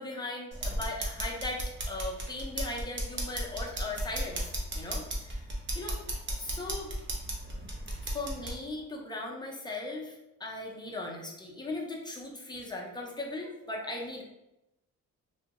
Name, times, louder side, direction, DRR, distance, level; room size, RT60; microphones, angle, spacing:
voice 1, 0.0-1.6 1.9-5.4 5.7-7.2 8.0-14.2, left 2 dB, 10° left, -1 dB, 0.6 m, -38 dB
sound 1, 0.5-8.5, right 1 dB, 35° right, 0.7 m, -35 dB
2.8 x 2.2 x 2.9 m, 0.90 s
cardioid pair, 105°, 35 cm